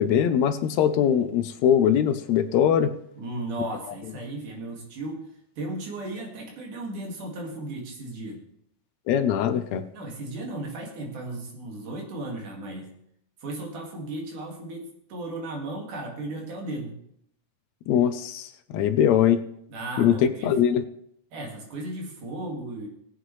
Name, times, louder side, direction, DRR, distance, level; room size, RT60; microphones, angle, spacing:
voice 1, 0.0-2.9 9.1-9.8 17.9-19.4 20.0-20.8, left 9 dB, 80° left, 10 dB, 1.7 m, -22 dB
voice 2, 3.2-5.2 5.6-8.4 9.9-12.9 13.4-16.9 19.7-20.5 21.3-22.9, right 2 dB, 90° right, 0 dB, 3.6 m, -35 dB
19.0 x 8.1 x 3.2 m, 0.72 s
omnidirectional pair, 3.5 m